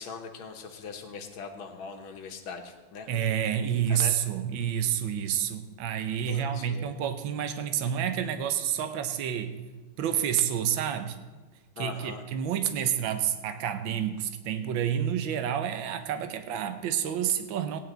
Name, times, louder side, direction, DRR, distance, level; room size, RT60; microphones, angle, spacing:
voice 1, 0.0-3.1 3.6-4.2 6.3-7.0 11.8-12.2, left 5 dB, 75° left, 5 dB, 1.9 m, -41 dB
voice 2, 3.1-9.5 10.0-11.2 11.8-17.8, right 9 dB, 70° right, 8 dB, 1.5 m, -29 dB
17.0 x 10.0 x 3.9 m, 1.3 s
omnidirectional pair, 2.3 m